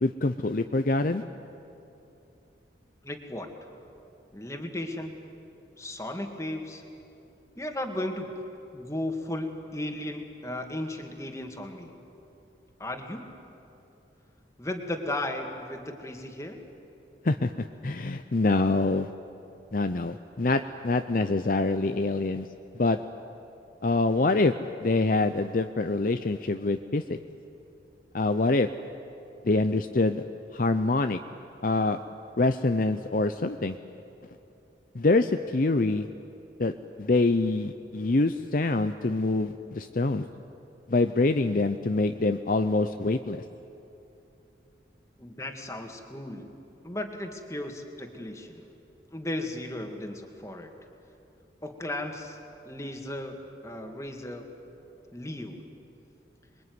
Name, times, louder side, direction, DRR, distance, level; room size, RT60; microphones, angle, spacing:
voice 1, 0.0-1.2 17.2-17.5 17.8-19.1 19.7-22.5 22.8-23.0 23.8-24.5 24.8-27.2 28.1-28.7 29.4-30.2 30.5-31.2 31.6-32.0 32.4-33.8 34.9-36.1 36.6-36.7 37.0-40.2 40.9-43.4, left 2 dB, 50° left, 8 dB, 0.6 m, -25 dB
voice 2, 3.0-3.5 4.3-5.1 5.8-6.8 7.6-8.3 8.7-11.9 12.8-13.3 14.6-16.6 45.2-46.5 46.8-48.6 49.1-50.7 51.6-52.4 52.7-53.4 53.6-54.5 55.1-55.6, left 1 dB, 15° left, 4 dB, 2.1 m, -35 dB
26.5 x 22.5 x 9.5 m, 2.9 s
head